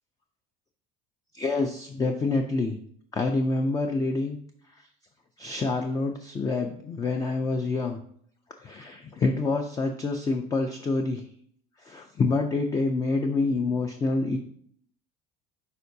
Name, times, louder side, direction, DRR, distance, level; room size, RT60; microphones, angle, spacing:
voice 1, 1.3-2.8 3.1-4.4 5.4-8.0 8.6-11.2 11.8-14.4, left 3 dB, 20° left, 4 dB, 0.4 m, -27 dB
11.0 x 4.5 x 2.8 m, 0.62 s
cardioid pair, 160°, 21 cm